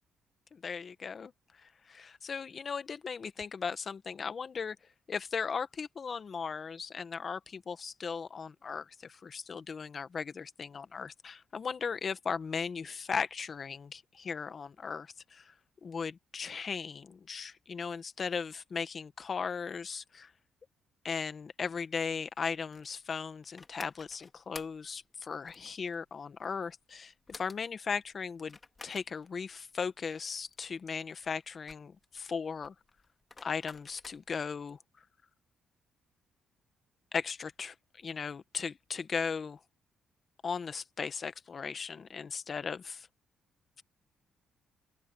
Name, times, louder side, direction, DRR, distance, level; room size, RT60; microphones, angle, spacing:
voice 1, 0.6-1.3 1.9-4.8 5.1-15.5 15.8-20.3 21.0-32.7 33.4-34.8 37.1-39.6 40.4-43.1, left 5 dB, 45° left, 1.4 m, -37 dB
sound 1, 22.0-34.5, left 3 dB, 25° left, 3.2 m, -53 dB
open air
cardioid pair, 90°, 0 cm